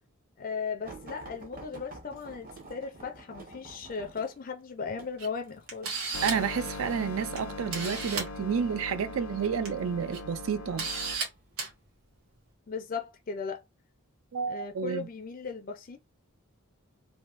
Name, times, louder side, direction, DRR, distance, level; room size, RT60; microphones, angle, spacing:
voice 1, 0.4-6.1 12.7-13.6 14.4-16.0, left 5 dB, 40° left, 0.4 m, -37 dB
sound 1, 0.8-7.7 8.4-8.9 9.8-10.4 11.2-11.4 11.7-11.8, right 2 dB, 40° right, 0.9 m, -49 dB
Camera, 5.2-5.3 5.7-6.5 7.4-7.5 7.7-8.3 9.4-9.7 10.1-10.2 10.8-11.3 11.6-11.7, right 4 dB, 90° right, 1.5 m, -33 dB
sound 2, 6.1-11.1, left 3 dB, 90° left, 0.6 m, -40 dB
voice 2, 6.2-10.9 14.3-15.1, right 7 dB, 70° right, 0.4 m, -30 dB
3.4 x 2.6 x 2.4 m
head